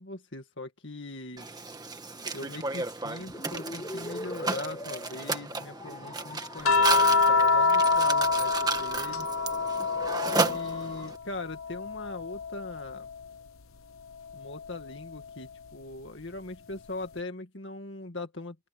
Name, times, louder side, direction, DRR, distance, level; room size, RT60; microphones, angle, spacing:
voice 1, 0.0-1.5 2.3-9.3 10.3-13.1 14.3-18.6, left 2 dB, 60° left, 2.1 m, -40 dB
Mechanisms, 1.4-11.2, right 3 dB, 20° right, 1.7 m, -33 dB
sound 1, 3.2-11.1, left 1 dB, 20° left, 4.8 m, -44 dB
sound 2, 6.6-11.1 11.5-13.1 14.6-14.8, left 3 dB, 90° left, 0.9 m, -26 dB
open air
head